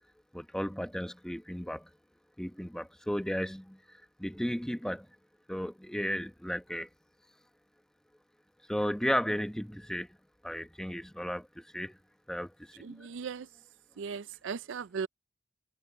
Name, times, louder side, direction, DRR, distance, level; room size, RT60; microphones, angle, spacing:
voice 1, 0.3-1.9 2.4-5.1 5.5-6.9 8.7-10.1 10.4-12.0 12.3-13.1, equal, 5° left, 0.9 m, -34 dB
voice 2, 12.8-13.5 14.0-15.1, right 6 dB, 75° right, 0.4 m, -37 dB
head